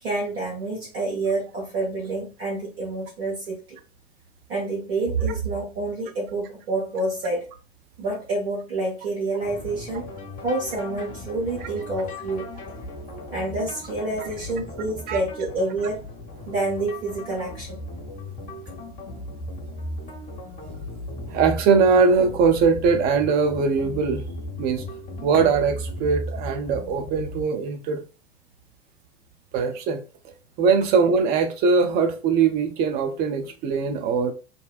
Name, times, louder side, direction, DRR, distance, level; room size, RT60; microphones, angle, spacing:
voice 1, 0.0-3.8 4.5-7.4 8.0-10.1 10.4-12.5 13.3-16.0 16.5-17.8, right 2 dB, 65° right, 1.1 m, -28 dB
sound 1, 9.4-27.5, left 1 dB, 30° left, 0.8 m, -36 dB
voice 2, 21.3-24.2 24.6-24.8 25.2-28.0 29.5-30.0 30.6-34.3, right 5 dB, 30° right, 0.5 m, -21 dB
2.6 x 2.0 x 2.3 m
figure-of-eight pair, 80°, 31 cm